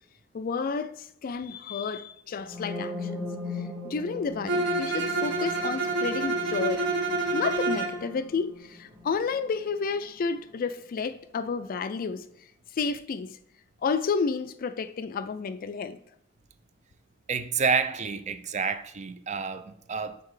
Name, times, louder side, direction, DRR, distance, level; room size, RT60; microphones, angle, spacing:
voice 1, 0.3-6.8 7.3-12.3 12.7-13.4 13.8-16.0, left 5 dB, 45° left, 0.4 m, -31 dB
sound 1, 2.4-10.2, left 2 dB, 10° right, 1.0 m, -40 dB
Bowed string instrument, 4.5-8.0, right 2 dB, 60° right, 1.0 m, -28 dB
voice 2, 17.3-20.2, right 5 dB, 35° right, 0.4 m, -29 dB
6.5 x 4.1 x 4.8 m
head